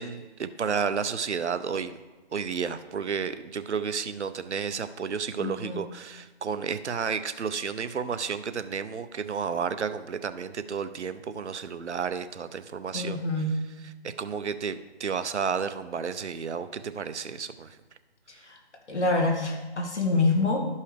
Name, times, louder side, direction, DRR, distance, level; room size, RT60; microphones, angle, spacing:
voice 1, 0.0-2.0 2.3-13.2 13.8-17.8, right 6 dB, 80° right, 11 dB, 0.6 m, -32 dB
voice 2, 5.4-5.8 12.9-13.6 18.5-18.6 18.9-20.6, left 2 dB, 80° left, 2 dB, 1.8 m, -26 dB
12.5 x 5.5 x 3.3 m, 1.2 s
figure-of-eight pair, 165°, 34 cm